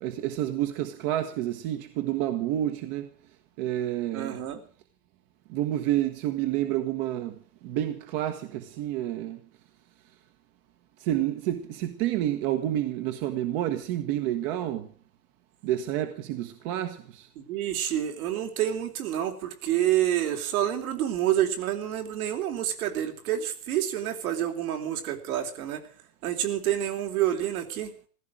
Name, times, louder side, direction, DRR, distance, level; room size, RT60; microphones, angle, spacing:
voice 1, 0.0-3.0 3.6-4.3 5.5-7.3 7.6-8.4 8.8-9.4 11.1-14.8 15.6-17.0, right 13 dB, 35° right, 1.4 m, -29 dB
voice 2, 4.1-4.6 17.4-25.8 26.2-27.9, right 11 dB, 65° right, 3.6 m, -28 dB
15.5 x 15.0 x 6.3 m
supercardioid pair, 155°, 47 cm